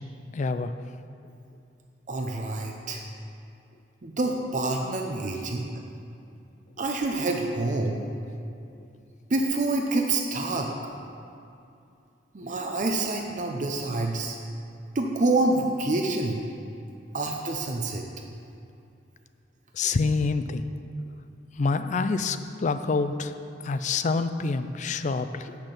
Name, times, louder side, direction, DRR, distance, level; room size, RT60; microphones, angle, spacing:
voice 1, 0.3-0.7 19.7-20.6 21.6-23.3 23.6-25.6, left 4 dB, 40° left, 10 dB, 0.4 m, -27 dB
voice 2, 2.1-3.0 4.0-5.7 6.8-8.0 9.3-10.7 12.3-14.4 14.9-16.4 17.1-18.0, right 2 dB, 45° right, 2 dB, 0.6 m, -27 dB
8.9 x 5.9 x 6.6 m, 2.6 s
head